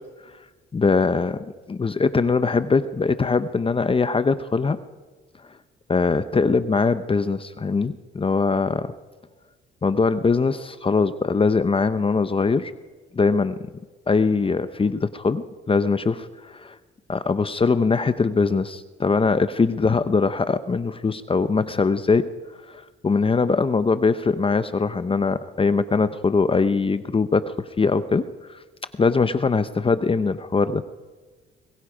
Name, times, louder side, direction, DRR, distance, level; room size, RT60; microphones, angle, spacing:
voice 1, 0.7-4.8 5.9-8.9 9.8-12.7 13.1-13.5 14.1-16.8 17.1-22.2 22.7-28.6 29.0-30.8, left 4 dB, 25° left, 12 dB, 0.9 m, -22 dB
25.0 x 21.5 x 5.1 m, 1.4 s
cardioid pair, 90°, 20 cm